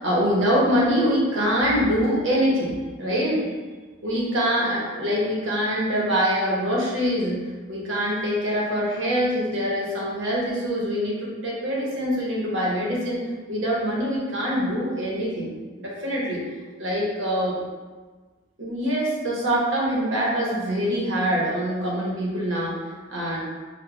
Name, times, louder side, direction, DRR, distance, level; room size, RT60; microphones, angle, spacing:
voice 1, 0.0-3.4 4.0-7.4 7.7-13.2 13.5-15.5 15.8-16.4 16.8-17.6 18.6-22.8 23.1-23.4, equal, 65° right, -5 dB, 0.9 m, -24 dB
4.8 x 2.2 x 2.3 m, 1.4 s
head